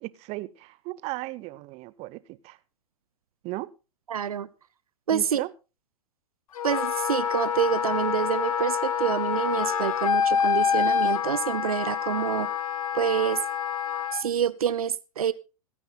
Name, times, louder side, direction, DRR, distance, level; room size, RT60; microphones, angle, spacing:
voice 1, 0.0-2.6 3.4-3.7 5.1-5.5, right 20 dB, 35° right, 0.8 m, -36 dB
voice 2, 4.1-4.5 5.1-5.4 6.6-12.5 12.9-13.4 14.1-15.3, right 8 dB, 80° right, 0.7 m, -27 dB
Wind instrument woodwind instrument, 6.6-14.3, left 7 dB, 70° left, 1.0 m, -27 dB
26.0 x 9.7 x 2.2 m
figure-of-eight pair, 100°, 18 cm